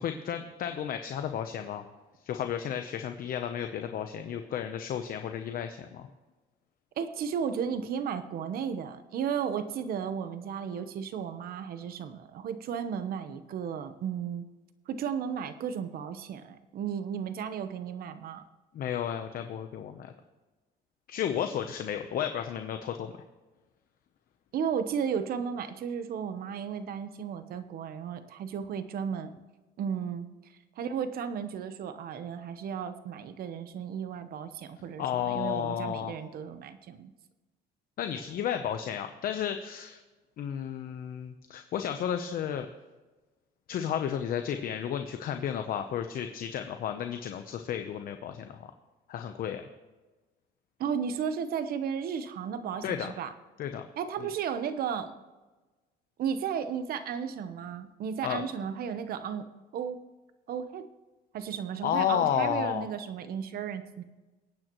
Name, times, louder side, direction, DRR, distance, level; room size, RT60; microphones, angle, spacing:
voice 1, 0.0-1.8 2.2-6.1 18.7-20.1 21.1-23.1 35.0-36.2 38.0-40.0 40.4-42.7 43.7-48.7 49.1-49.6 52.8-53.1 53.6-53.8 54.2-54.3 58.2-58.4 61.8-62.8, left 9 dB, 60° left, 7 dB, 0.8 m, -32 dB
voice 2, 7.0-14.5 14.9-18.4 24.5-29.3 29.8-30.3 30.8-37.1 50.8-53.3 54.0-55.1 56.2-60.0 60.5-60.9 61.3-64.0, right 7 dB, 60° right, 11 dB, 1.0 m, -34 dB
24.0 x 8.9 x 3.1 m, 1.2 s
cardioid pair, 110°, 17 cm